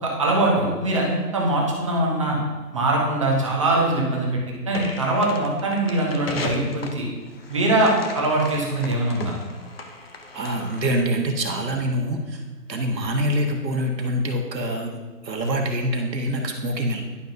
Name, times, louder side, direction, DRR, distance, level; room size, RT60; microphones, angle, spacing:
voice 1, 0.0-2.4 2.7-4.4 4.7-7.0 7.5-9.3, right 2 dB, 20° right, -2 dB, 0.9 m, -22 dB
sound 1, 4.7-11.1, left 3 dB, 40° left, 0.6 m, -37 dB
voice 2, 10.3-12.4 12.7-14.9 15.2-17.0, right 1 dB, 80° right, 2 dB, 1.6 m, -25 dB
11.5 x 5.6 x 2.7 m, 1.3 s
hypercardioid pair, 160°, 50 cm